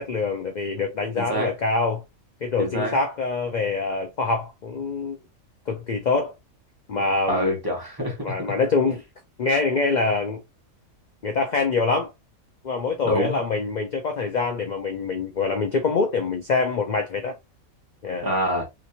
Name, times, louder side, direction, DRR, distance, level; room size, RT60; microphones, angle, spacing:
voice 1, 0.0-2.0 2.4-5.2 5.7-6.3 6.9-7.5 8.2-9.0 9.4-10.4 11.2-12.1 12.6-17.3 18.0-18.3, left 4 dB, 60° left, 0.4 m, -25 dB
voice 2, 1.2-1.5 2.6-3.0 7.3-8.3 13.0-13.4 18.2-18.6, equal, 15° right, 1.2 m, -26 dB
3.2 x 3.0 x 2.7 m
omnidirectional pair, 1.5 m